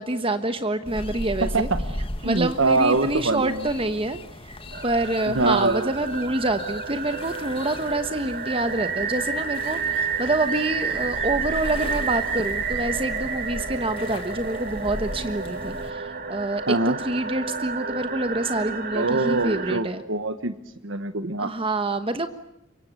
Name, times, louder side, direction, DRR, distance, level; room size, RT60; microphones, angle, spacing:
voice 1, 0.0-1.7 2.2-4.6 4.8-20.0 21.4-22.3, right 2 dB, 25° right, 9 dB, 1.3 m, -27 dB
sound 1, 0.8-15.9, left 1 dB, 30° left, 1.9 m, -37 dB
voice 2, 1.4-1.8 2.2-3.6 5.3-5.9 16.7-17.0 18.9-20.5 20.8-21.5, right 3 dB, 75° right, 9 dB, 1.4 m, -24 dB
sound 2, 4.7-19.8, right 5 dB, 45° right, 2.2 m, -30 dB
28.5 x 25.0 x 8.3 m, 0.82 s
head